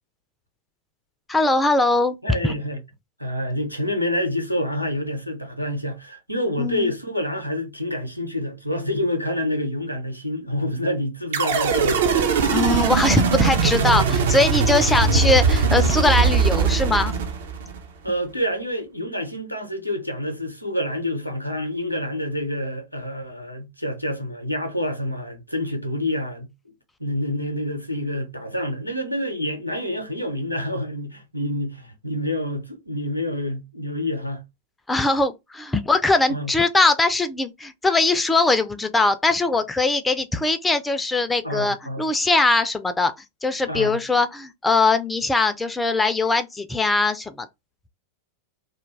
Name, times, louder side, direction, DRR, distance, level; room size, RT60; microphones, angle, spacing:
voice 1, 1.3-2.2 2.4-2.5 6.6-6.9 12.5-17.1 34.9-43.1 43.4-47.5, left 3 dB, 10° left, 0.3 m, -21 dB
voice 2, 2.2-2.8 3.2-12.0 18.0-26.5 27.0-34.4 36.3-36.5 41.4-42.0 43.7-44.0, left 1 dB, 90° left, 0.6 m, -27 dB
sound 1, 11.3-17.8, right 5 dB, 60° right, 0.5 m, -20 dB
2.2 x 2.2 x 3.1 m
figure-of-eight pair, 90°, 0 cm